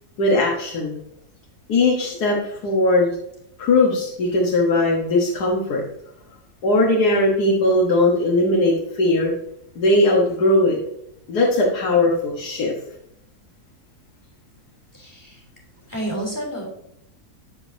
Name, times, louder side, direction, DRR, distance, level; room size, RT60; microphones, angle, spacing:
voice 1, 0.2-1.0 1.7-3.1 3.6-5.8 6.6-9.3 9.7-10.8 11.3-12.7, left 2 dB, 85° left, -3 dB, 1.8 m, -19 dB
voice 2, 14.9-15.4 15.9-16.6, right 1 dB, 10° left, -2 dB, 2.9 m, -30 dB
13.0 x 5.0 x 2.7 m, 0.77 s
omnidirectional pair, 1.6 m